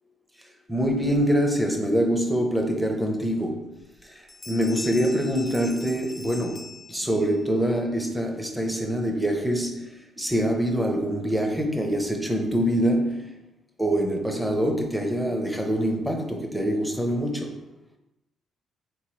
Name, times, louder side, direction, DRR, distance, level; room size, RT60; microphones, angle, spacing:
voice 1, 0.7-3.7 4.5-9.9 10.2-13.2 13.8-17.6, equal, 5° right, 0.6 m, -25 dB
sound 1, 3.8-4.0 4.3-7.4, left 3 dB, 30° left, 0.3 m, -42 dB
3.8 x 3.0 x 3.0 m
cardioid pair, 90°, 0 cm